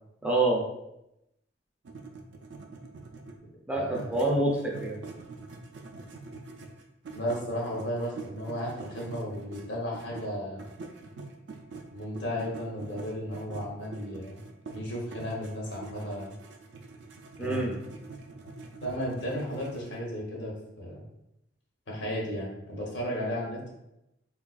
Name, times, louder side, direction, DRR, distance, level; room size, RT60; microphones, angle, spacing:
voice 1, 0.2-0.7 3.7-5.0 17.4-17.7, right 2 dB, 5° right, -3 dB, 0.4 m, -26 dB
sound 1, 1.8-3.5 3.9-10.3 10.6-20.0, right 3 dB, 75° right, 0.4 m, -45 dB
voice 2, 3.7-4.3 7.1-10.6 11.9-14.4 14.7-16.3 17.4-17.8 18.8-21.0 21.9-23.7, equal, 75° left, -3 dB, 0.9 m, -34 dB
3.4 x 2.3 x 2.3 m, 0.86 s
head